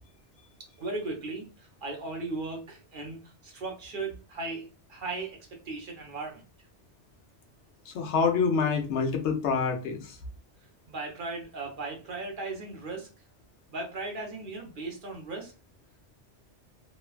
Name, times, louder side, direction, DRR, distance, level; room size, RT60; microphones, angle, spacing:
voice 1, 0.8-5.4 5.6-6.4 10.9-13.1 13.7-15.5, right 3 dB, 50° right, 0 dB, 0.9 m, -37 dB
voice 2, 7.9-10.1, left 5 dB, 80° left, 4 dB, 1.0 m, -26 dB
3.0 x 2.2 x 2.3 m, 0.33 s
omnidirectional pair, 1.2 m